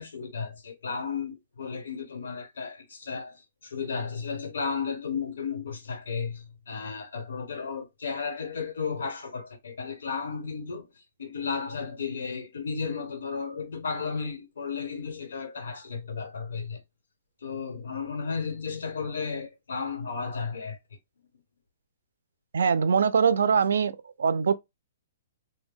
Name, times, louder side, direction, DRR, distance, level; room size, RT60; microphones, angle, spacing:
voice 1, 0.0-16.8 17.4-20.8, left 5 dB, 85° left, 1.0 m, -34 dB
voice 2, 22.5-23.9 24.2-24.5, right 6 dB, 90° right, 0.4 m, -22 dB
2.2 x 2.1 x 3.4 m
hypercardioid pair, 175°, 0 cm